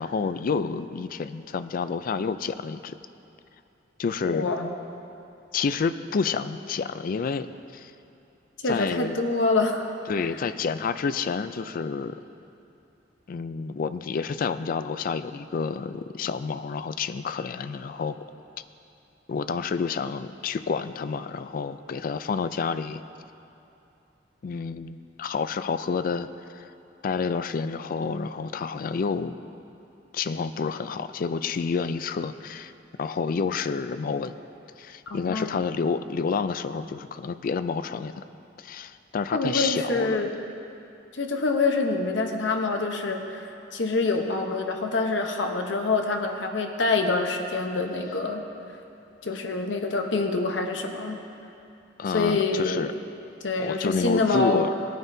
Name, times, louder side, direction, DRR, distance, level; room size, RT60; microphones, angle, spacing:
voice 1, 0.0-3.0 4.0-4.5 5.5-7.9 8.7-9.2 10.1-12.2 13.3-18.2 19.3-23.0 24.4-26.3 26.5-26.7 27.0-29.4 30.1-32.7 33.0-34.3 34.8-38.2 38.6-40.3 52.0-52.9 53.6-54.7, left 5 dB, 50° left, 12 dB, 0.3 m, -29 dB
voice 2, 4.2-4.7 8.6-9.9 35.1-35.5 39.3-40.3 41.1-48.4 49.2-51.2 52.1-52.9 53.4-54.7, left 3 dB, 85° left, 4 dB, 0.9 m, -26 dB
18.5 x 9.3 x 2.7 m, 2.7 s
head